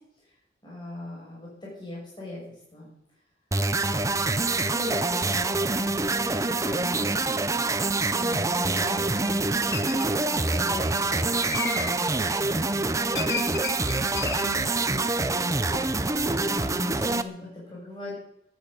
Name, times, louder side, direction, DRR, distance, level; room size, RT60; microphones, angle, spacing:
voice 1, 0.6-2.9 3.7-7.0 8.1-9.4 9.9-13.4 14.2-15.6 16.3-18.1, left 1 dB, 25° left, -6 dB, 6.3 m, -40 dB
sound 1, 3.5-17.2, right 3 dB, 20° right, 0.7 m, -26 dB
sound 2, 9.7-10.1 11.4-12.0 13.1-14.5 15.7-15.9 16.2-16.6, left 4 dB, 70° left, 2.0 m, -34 dB
14.5 x 11.0 x 8.5 m, 0.78 s
head